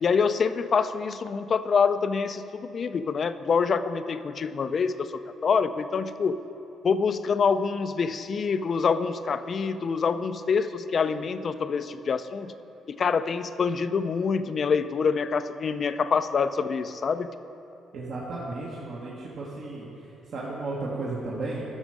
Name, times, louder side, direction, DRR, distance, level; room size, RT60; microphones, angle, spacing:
voice 1, 0.0-6.4 6.8-12.5 12.9-17.3, left 5 dB, 50° left, 11 dB, 0.4 m, -26 dB
voice 2, 17.9-19.8 20.3-21.6, right 2 dB, 65° right, -5 dB, 1.4 m, -34 dB
12.5 x 6.3 x 4.8 m, 2.9 s
cardioid pair, 90°, 0 cm